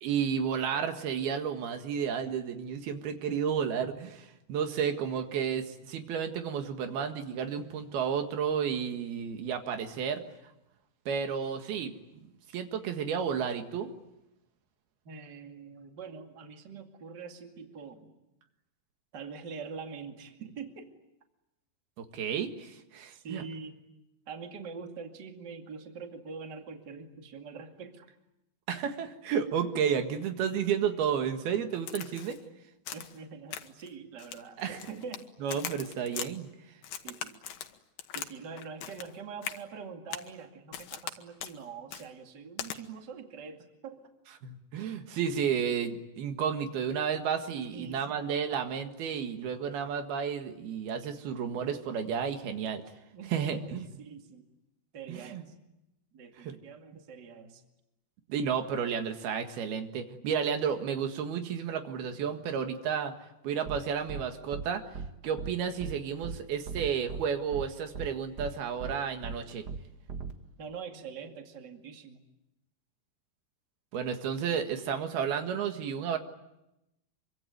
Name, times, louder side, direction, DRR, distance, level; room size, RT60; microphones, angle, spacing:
voice 1, 0.0-10.2 11.1-11.9 12.5-13.9 22.0-23.4 28.7-32.4 34.6-34.8 35.4-36.5 44.4-52.8 53.3-53.9 55.1-55.4 56.4-56.6 58.3-63.2 63.4-64.8 65.2-69.7 73.9-76.2, right 7 dB, 85° right, 6 dB, 3.7 m, -32 dB
voice 2, 15.0-18.1 19.1-20.9 23.1-23.8 24.3-28.1 32.9-35.3 37.0-37.4 38.1-44.1 47.7-48.3 53.1-53.7 54.0-54.4 54.9-55.5 56.1-57.6 70.6-72.2, right 5 dB, 30° right, 4 dB, 2.4 m, -44 dB
Crack, 31.9-32.4 32.9-33.2 33.5-33.9 34.2-35.2 35.5-36.3 36.8-38.3 38.6-39.1 39.4-39.6 40.1-40.3 40.7-41.1 41.4-41.6 41.9-42.1 42.6-42.8, left 10 dB, 70° left, 2.9 m, -40 dB
sound 1, 63.7-63.8 64.1-64.2 64.5-64.6 64.9-65.1 65.4-65.5 65.8-65.9 66.2-66.4 66.7-67.2 67.5-67.6 67.9-68.1 68.4-68.5 68.8-68.9 69.2-69.4 69.7-69.8 70.1-70.3, right 5 dB, 60° right, 1.0 m, -37 dB
26.0 x 24.5 x 9.3 m, 0.90 s
omnidirectional pair, 4.3 m